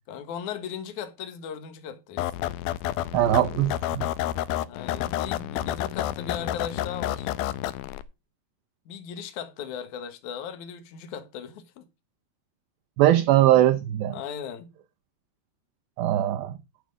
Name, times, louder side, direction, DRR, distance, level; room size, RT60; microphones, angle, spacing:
voice 1, 0.1-2.3 4.6-7.3 8.9-11.9 14.1-14.7, left 8 dB, 65° left, 2.2 m, -37 dB
sound 1, 2.2-8.0, left 13 dB, 80° left, 2.3 m, -30 dB
voice 2, 3.1-4.1 13.0-14.2 16.0-16.6, right 13 dB, 75° right, 2.3 m, -21 dB
11.5 x 5.2 x 6.3 m
omnidirectional pair, 4.8 m